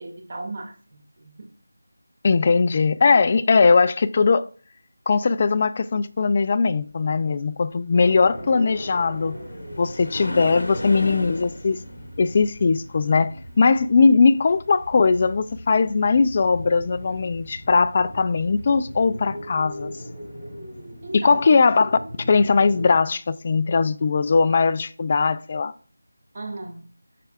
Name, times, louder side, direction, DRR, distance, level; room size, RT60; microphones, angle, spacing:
voice 1, 0.0-1.5 21.0-21.5 26.3-26.8, right 2 dB, 30° right, 2.1 m, -35 dB
voice 2, 2.2-4.4 5.1-9.4 9.8-11.8 12.2-19.9 21.1-22.0 22.3-25.7, left 4 dB, 25° left, 0.3 m, -19 dB
sound 1, 7.9-22.9, equal, 5° right, 3.6 m, -39 dB
sound 2, 8.7-14.0 17.9-18.0 18.6-18.7, left 1 dB, 60° left, 2.0 m, -35 dB
13.5 x 4.5 x 2.4 m
figure-of-eight pair, 175°, 0 cm